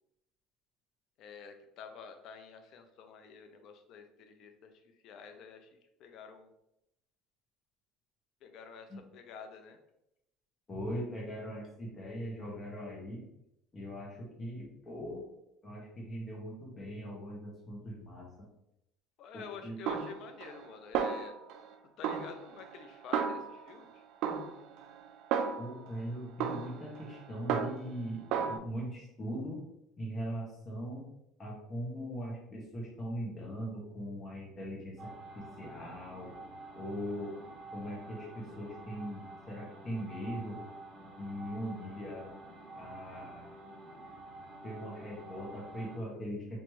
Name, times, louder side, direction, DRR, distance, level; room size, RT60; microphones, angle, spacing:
voice 1, 1.2-4.7 5.0-6.5 8.4-9.8 19.2-21.3 22.0-24.0, left 6 dB, 60° left, 6 dB, 0.6 m, -49 dB
voice 2, 10.7-13.3 13.7-15.2 15.6-18.5 19.3-19.8 25.6-29.6 30.0-31.1 31.4-36.3 36.7-37.4 37.7-40.6 41.0-42.3 42.7-43.6 44.6-46.6, equal, 30° left, -2 dB, 1.4 m, -40 dB
Snare drum, 19.9-20.7 20.9-21.7 22.0-23.8 24.2-25.9 26.4-28.0 28.3-28.6, right 7 dB, 70° right, 0.4 m, -34 dB
sound 1, 35.0-46.0, right 2 dB, 30° right, 1.3 m, -49 dB
3.2 x 3.1 x 3.1 m, 0.83 s
supercardioid pair, 105°, 0 cm